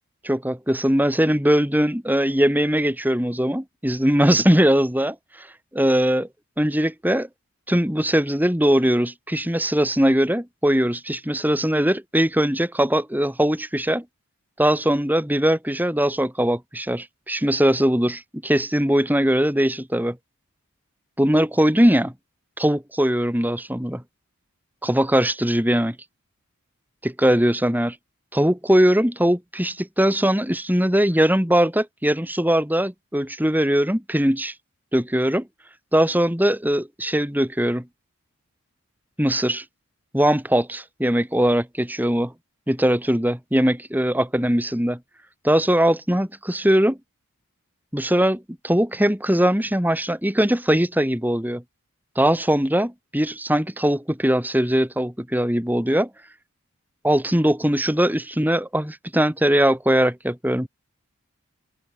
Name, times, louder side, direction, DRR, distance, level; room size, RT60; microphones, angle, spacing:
voice 1, 0.2-5.5 5.7-6.3 6.6-7.3 7.7-14.0 14.6-20.2 21.2-22.1 22.6-24.0 24.8-26.0 27.0-28.0 28.3-34.5 34.9-35.5 35.9-37.9 39.2-39.6 40.1-42.3 42.7-45.0 45.4-47.0 47.9-51.6 52.2-56.1 57.0-60.7, equal, 10° right, 3.4 m, -20 dB
open air
head